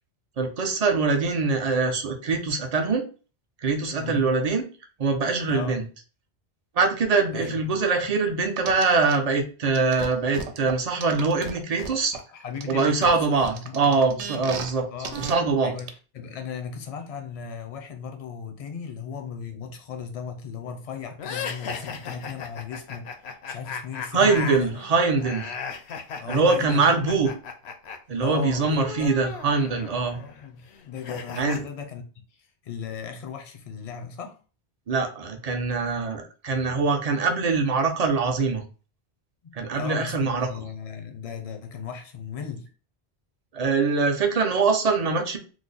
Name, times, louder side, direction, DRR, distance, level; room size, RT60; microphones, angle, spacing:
voice 1, 0.4-3.0 3.6-4.6 5.0-5.8 6.8-12.1 12.7-14.9 15.2-15.8 24.1-25.5 26.3-27.3 28.1-30.2 31.4-31.6 34.9-38.6 39.5-40.7 43.5-45.4, right 4 dB, 50° right, 0.5 m, -23 dB
voice 2, 4.0-4.3 5.5-5.8 7.3-7.8 12.1-14.3 14.9-23.2 23.5-24.7 26.2-27.2 28.2-29.4 30.1-34.4 39.4-42.7, left 6 dB, 45° left, 0.5 m, -37 dB
sound 1, 8.6-9.2 9.7-12.2 12.6-14.7 15.0-15.3 15.8-15.9, right 7 dB, 90° right, 0.9 m, -35 dB
sound 2, 21.2-28.0 28.2-31.6, left 6 dB, 75° left, 0.8 m, -36 dB
3.1 x 2.0 x 3.8 m
omnidirectional pair, 1.1 m